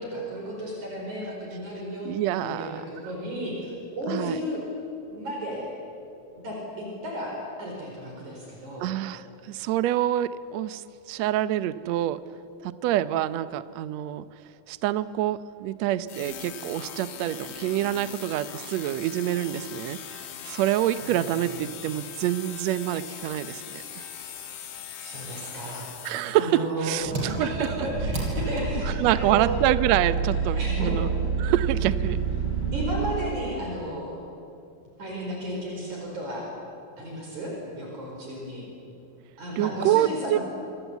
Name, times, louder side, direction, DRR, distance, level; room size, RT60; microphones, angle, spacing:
voice 1, 0.0-4.6 5.1-5.7 6.4-8.9 21.0-21.5 25.0-29.6 30.3-31.5 32.7-34.2 35.0-36.5 37.0-38.7 39.4-40.4, equal, 50° right, -1 dB, 6.2 m, -34 dB
voice 2, 2.0-2.8 4.1-4.4 8.8-12.2 12.6-14.2 14.7-24.0 26.0-27.5 28.9-31.1 31.4-32.2 39.6-40.4, right 13 dB, 85° right, 14 dB, 1.5 m, -26 dB
sound 1, 16.1-26.6, left 8 dB, 75° left, 3.4 m, -40 dB
Engine, 27.0-33.3, right 5 dB, 35° right, 5.7 m, -28 dB
26.0 x 26.0 x 8.3 m, 2.6 s
omnidirectional pair, 4.2 m